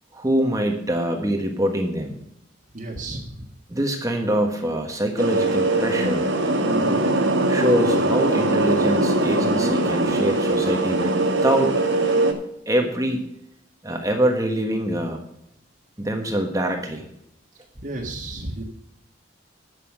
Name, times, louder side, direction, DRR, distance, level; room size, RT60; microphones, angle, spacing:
voice 1, 0.1-2.2 3.7-6.3 7.5-11.8 12.7-13.2 13.8-15.2 16.0-17.1, right 1 dB, 20° right, 3 dB, 1.3 m, -24 dB
voice 2, 2.7-3.5 6.7-7.0 17.8-18.6, right 2 dB, 45° right, -2 dB, 1.7 m, -33 dB
sound 1, 5.2-12.3, right 2 dB, 90° right, 1.9 m, -21 dB
11.0 x 6.8 x 6.4 m, 0.77 s
head